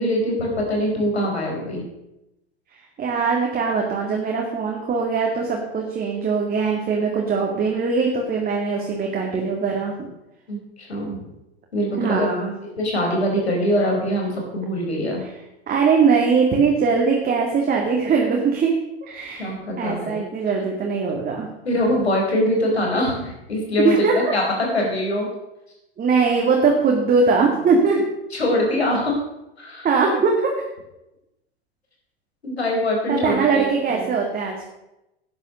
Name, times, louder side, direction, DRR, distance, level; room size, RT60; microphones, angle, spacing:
voice 1, 0.0-1.8 10.5-11.2 11.7-12.3 12.8-15.2 19.4-20.2 21.6-25.3 28.3-29.2 29.6-29.9 32.4-34.1, left 1 dB, 85° left, 0 dB, 4.5 m, -23 dB
voice 2, 3.0-10.1 12.0-12.5 15.2-15.3 15.7-21.5 23.8-24.3 26.0-28.0 29.8-30.5 33.1-34.6, right 5 dB, 30° right, 0 dB, 2.3 m, -21 dB
12.0 x 9.4 x 6.5 m, 0.92 s
hypercardioid pair, 85°, 31 cm